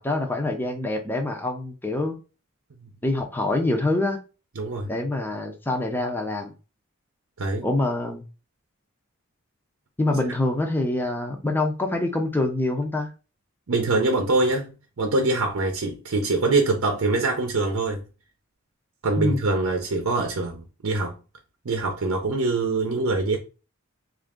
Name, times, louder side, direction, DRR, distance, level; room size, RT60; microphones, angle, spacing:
voice 1, 0.0-2.2 3.0-4.2 4.9-6.5 7.6-8.2 10.0-13.1 19.2-19.4, left 2 dB, 10° left, 0.5 m, -25 dB
voice 2, 4.6-4.9 7.4-7.7 13.7-18.0 19.0-21.2 21.6-23.4, right 3 dB, 80° right, 0.6 m, -24 dB
3.7 x 2.5 x 3.6 m
head